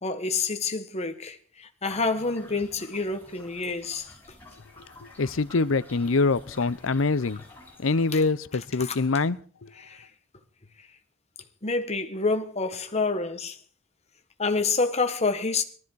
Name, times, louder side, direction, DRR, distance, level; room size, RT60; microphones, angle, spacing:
voice 1, 0.0-4.1 8.1-8.2 8.8-9.0 9.8-10.0 11.6-13.6 14.4-15.6, left 3 dB, 35° left, 1.5 m, -28 dB
sound 1, 1.9-8.2, left 1 dB, 10° left, 7.1 m, -50 dB
voice 2, 5.2-7.4 7.8-9.7, left 3 dB, 75° left, 0.7 m, -24 dB
19.0 x 13.0 x 4.8 m
head